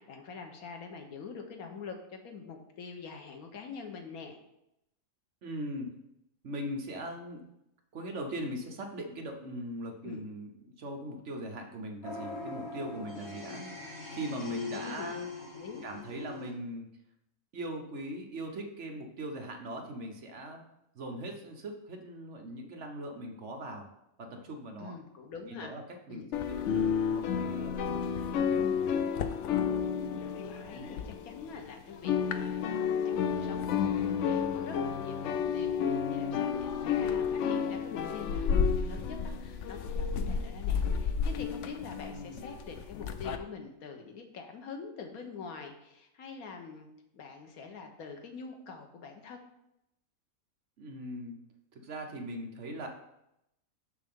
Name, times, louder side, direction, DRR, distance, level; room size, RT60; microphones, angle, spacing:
voice 1, 0.0-4.4 10.0-10.2 13.4-13.9 14.7-15.1 15.6-15.8 24.8-25.8 26.1-26.3 29.9-32.6 33.0-46.9 47.1-49.4, left 5 dB, 90° left, 4 dB, 1.4 m, -45 dB
voice 2, 5.4-5.9 6.4-7.4 7.9-10.5 10.8-13.6 14.1-15.3 15.8-16.9 17.5-20.6 20.9-23.9 24.2-24.9 25.5-27.8 28.3-28.9 30.7-30.9 36.8-37.0 42.1-42.5 50.8-51.4 51.7-52.9, right 1 dB, 60° right, 3 dB, 1.2 m, -40 dB
sound 1, 12.0-16.5, left 4 dB, 50° left, 2.0 m, -41 dB
sound 2, 26.3-31.7 31.9-43.4, left 7 dB, 65° left, 0.8 m, -31 dB
6.6 x 6.5 x 3.6 m, 0.83 s
omnidirectional pair, 1.5 m